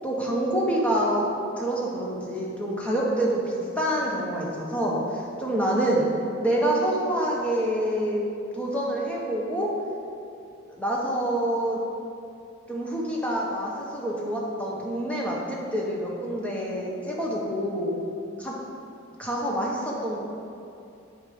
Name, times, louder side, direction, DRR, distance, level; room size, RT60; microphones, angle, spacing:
voice 1, 0.0-1.3 1.6-6.1 6.4-8.2 8.5-9.7 10.7-11.8 12.7-17.9 18.4-18.5 19.2-20.2, right 1 dB, 5° left, -4 dB, 1.3 m, -27 dB
8.1 x 5.2 x 5.3 m, 2.6 s
head